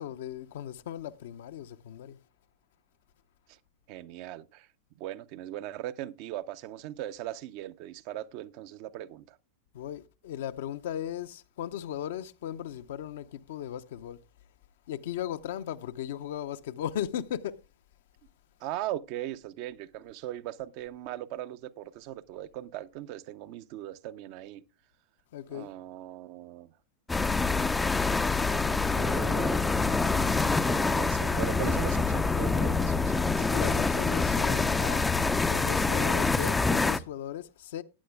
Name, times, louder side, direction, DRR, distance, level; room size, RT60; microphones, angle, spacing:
voice 1, 0.0-2.2 9.7-14.2 14.9-17.6 25.3-25.7 33.4-35.0 35.5-37.8, left 10 dB, 55° left, 0.7 m, -37 dB
voice 2, 3.9-4.7 5.0-9.4 18.6-24.6 25.5-26.7 27.8-29.8 30.7-33.5, right 13 dB, 45° right, 0.6 m, -39 dB
sound 1, 27.1-37.0, left 4 dB, 10° left, 0.5 m, -26 dB
18.5 x 9.3 x 2.2 m
figure-of-eight pair, 90°, 0 cm